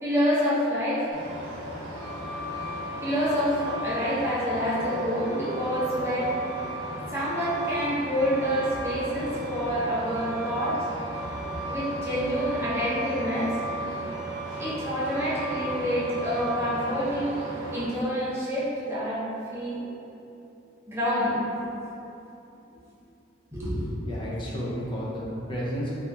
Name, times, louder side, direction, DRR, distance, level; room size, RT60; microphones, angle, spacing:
voice 1, 0.0-1.1 3.0-6.3 7.1-10.8 11.6-13.5 14.6-17.4 17.7-19.2 19.5-19.8 20.9-21.4 23.5-23.9, equal, 15° right, -10 dB, 0.7 m, -27 dB
Truck, 1.1-17.9, right 1 dB, 75° right, 0.8 m, -35 dB
voice 2, 24.0-25.9, equal, 25° left, -6 dB, 0.5 m, -32 dB
2.9 x 2.6 x 3.3 m, 2.8 s
head